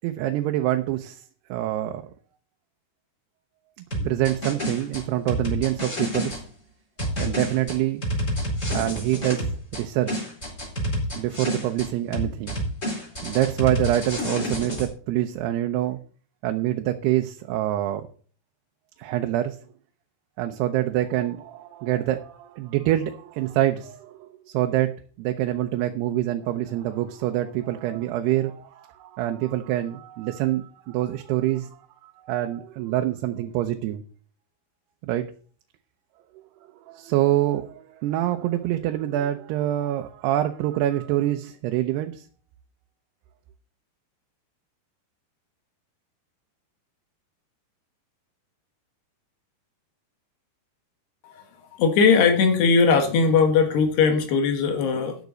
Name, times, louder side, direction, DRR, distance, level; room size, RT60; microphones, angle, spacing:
voice 1, 0.0-1.2 1.5-2.0 3.9-6.4 7.2-8.0 8.7-10.3 11.2-12.6 13.2-16.0 16.4-18.1 19.0-19.6 20.4-34.0 35.1-35.3 36.9-42.3, right 13 dB, 85° right, 5 dB, 2.8 m, -26 dB
sound 1, 3.9-6.4 7.0-9.8 10.1-11.9 12.1-14.9, equal, 20° left, 4.4 m, -29 dB
voice 2, 51.8-55.2, left 5 dB, 90° left, 5 dB, 3.8 m, -19 dB
13.0 x 9.3 x 4.0 m, 0.43 s
omnidirectional pair, 4.6 m